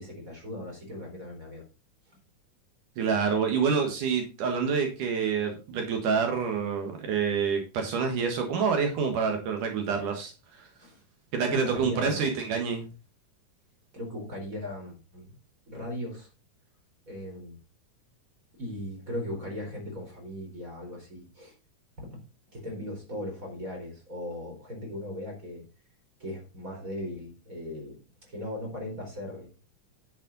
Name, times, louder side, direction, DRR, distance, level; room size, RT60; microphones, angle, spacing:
voice 1, 0.0-1.6 10.8-11.0 11.5-12.3 13.9-15.4 15.7-16.3 17.1-17.6 18.6-21.5 22.0-22.1 22.5-25.6 26.2-28.0 28.3-29.5, left 1 dB, 25° right, 1 dB, 4.4 m, -38 dB
voice 2, 3.0-10.7 11.3-12.9, right 6 dB, 75° right, 4 dB, 3.0 m, -27 dB
10.0 x 7.5 x 4.0 m, 0.31 s
omnidirectional pair, 3.8 m